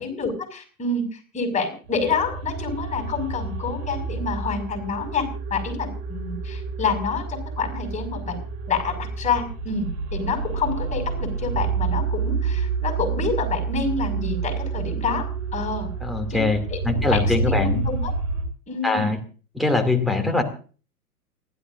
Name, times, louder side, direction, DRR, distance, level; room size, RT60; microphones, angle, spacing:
voice 1, 0.0-8.4 8.7-15.2 15.5-15.9 16.3-18.1 18.7-19.1, left 5 dB, 15° left, 3 dB, 6.1 m, -28 dB
sound 1, 1.9-18.5, right 4 dB, 50° right, 3.4 m, -29 dB
voice 2, 16.0-17.9 18.8-19.2 19.5-20.4, left 3 dB, ahead, 2 dB, 2.6 m, -22 dB
29.0 x 12.5 x 2.6 m, 0.39 s
figure-of-eight pair, 105°, 46 cm